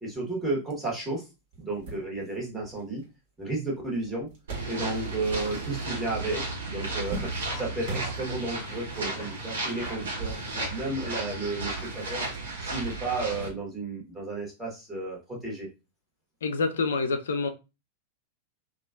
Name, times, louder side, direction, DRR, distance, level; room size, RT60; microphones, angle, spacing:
voice 1, 0.0-1.2 1.6-3.0 3.4-4.3 4.7-12.2 12.6-15.7, right 2 dB, 10° right, 1.3 m, -33 dB
sound 1, 1.5-5.3 5.6-6.3 6.6-8.7 9.4-9.5 10.8-11.0, right 1 dB, 50° right, 1.2 m, -42 dB
Bark, 4.1-4.7 6.3-6.5 7.4-8.2 9.1-9.4 9.8-10.0 10.5-11.2, left 3 dB, 25° left, 1.2 m, -46 dB
sound 2, 4.5-13.5, right 2 dB, 65° right, 1.0 m, -34 dB
voice 2, 16.4-17.5, left 4 dB, 65° left, 0.4 m, -27 dB
2.8 x 2.3 x 2.4 m
figure-of-eight pair, 90°, 0 cm